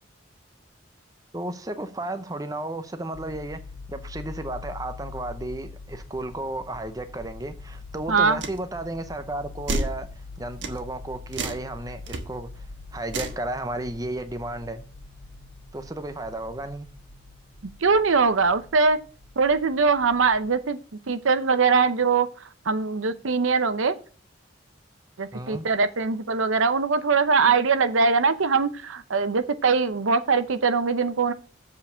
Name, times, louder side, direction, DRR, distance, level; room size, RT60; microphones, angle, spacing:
voice 1, 1.3-3.6 3.9-12.7 12.9-14.9 15.7-16.9 25.3-25.7, right 1 dB, 20° right, 0.6 m, -33 dB
sound 1, 3.1-20.6, left 3 dB, 75° left, 1.6 m, -44 dB
voice 2, 8.1-8.4 17.8-19.0 19.4-20.8 21.1-22.3 22.7-23.9 25.2-31.3, right 4 dB, 85° right, 0.7 m, -22 dB
sound 2, 8.4-8.6 9.7-10.0 10.6-10.8 11.3-11.6 12.1-12.2 13.1-13.4, right 2 dB, 65° right, 1.3 m, -29 dB
7.5 x 4.7 x 6.7 m
head